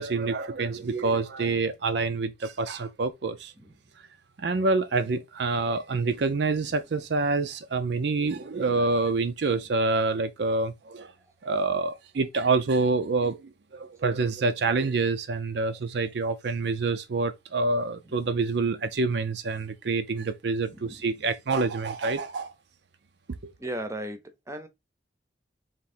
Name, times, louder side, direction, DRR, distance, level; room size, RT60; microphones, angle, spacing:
voice 1, 0.0-3.5 4.4-11.1 11.4-22.5 23.4-23.5, right 3 dB, 65° right, 0.5 m, -27 dB
voice 2, 23.6-24.2 24.5-24.7, right 1 dB, 15° right, 0.7 m, -36 dB
3.6 x 3.0 x 4.3 m
head